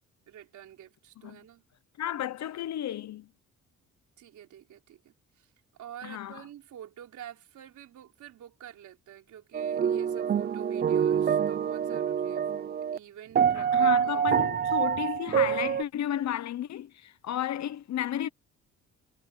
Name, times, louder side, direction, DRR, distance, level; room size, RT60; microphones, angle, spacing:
voice 1, 0.3-1.6 4.2-5.5 5.8-12.6 12.9-14.5, right 10 dB, 75° right, 4.0 m, -48 dB
voice 2, 2.0-3.3 6.0-6.4 13.5-18.3, left 11 dB, 65° left, 1.0 m, -33 dB
sound 1, 9.5-13.0 13.4-15.8, right 8 dB, 35° right, 0.5 m, -26 dB
cardioid pair, 90°, 30 cm